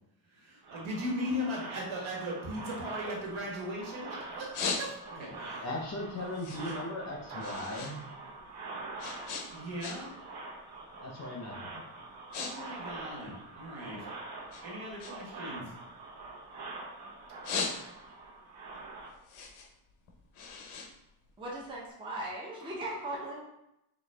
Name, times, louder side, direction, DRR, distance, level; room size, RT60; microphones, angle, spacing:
voice 1, 0.3-5.7 9.5-10.2 12.3-14.1 14.6-15.7, equal, 70° right, -3 dB, 1.5 m, -38 dB
sound 1, 0.6-19.1, right 3 dB, 50° right, 0.9 m, -45 dB
sound 2, 3.3-3.9 4.3-5.3 5.7-8.0 8.2-10.3 10.6-10.9 11.5-11.7 12.0-12.5 12.8-14.0 14.5-16.8 17.2-18.2 18.7-21.8, left 5 dB, 80° left, 0.8 m, -39 dB
voice 2, 5.6-8.1 11.0-11.8, left 1 dB, 35° left, -1 dB, 0.7 m, -38 dB
voice 3, 21.4-23.4, right 1 dB, 10° right, -4 dB, 0.5 m, -38 dB
4.3 x 2.8 x 3.4 m, 0.84 s
cardioid pair, 170°, 49 cm